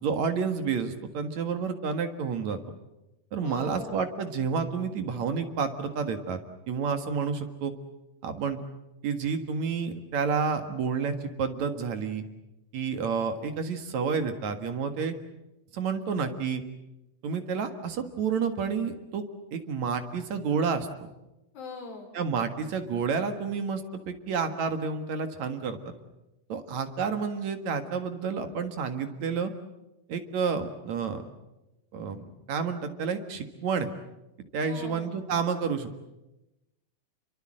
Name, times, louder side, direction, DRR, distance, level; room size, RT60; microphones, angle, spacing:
voice 1, 0.0-2.6 3.3-6.4 6.7-7.7 8.2-8.6 9.0-12.2 12.7-15.1 15.7-16.6 17.2-19.2 19.5-21.1 22.1-25.9 26.5-29.5 30.1-31.2 31.9-33.9 34.5-35.9, right 5 dB, 55° right, 8 dB, 2.7 m, -30 dB
voice 2, 3.4-4.0 21.5-22.1 34.6-35.1, left 4 dB, 70° left, 2 dB, 6.3 m, -41 dB
28.0 x 24.0 x 7.6 m, 0.94 s
omnidirectional pair, 4.2 m